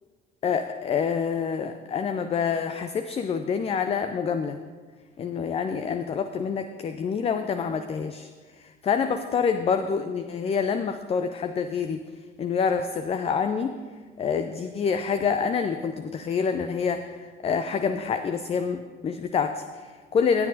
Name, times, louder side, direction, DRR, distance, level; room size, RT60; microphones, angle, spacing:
voice 1, 0.4-4.6 5.2-8.3 8.6-12.0 12.4-13.7 14.2-20.5, left 6 dB, 20° left, 9 dB, 0.4 m, -27 dB
15.0 x 9.2 x 2.7 m, 1.5 s
figure-of-eight pair, 55°, 30 cm